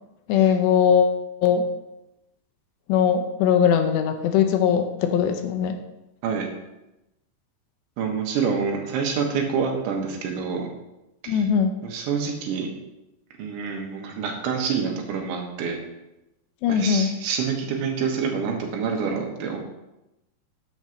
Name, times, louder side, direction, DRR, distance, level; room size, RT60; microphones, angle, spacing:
voice 1, 0.3-1.6 2.9-5.8 11.3-11.7 16.6-17.1, left 8 dB, 80° left, 7 dB, 2.8 m, -20 dB
voice 2, 8.0-10.7 11.2-11.4 11.8-12.7 13.4-15.8 16.7-19.6, right 6 dB, 85° right, 1 dB, 3.8 m, -27 dB
13.0 x 9.7 x 3.1 m, 0.94 s
omnidirectional pair, 5.3 m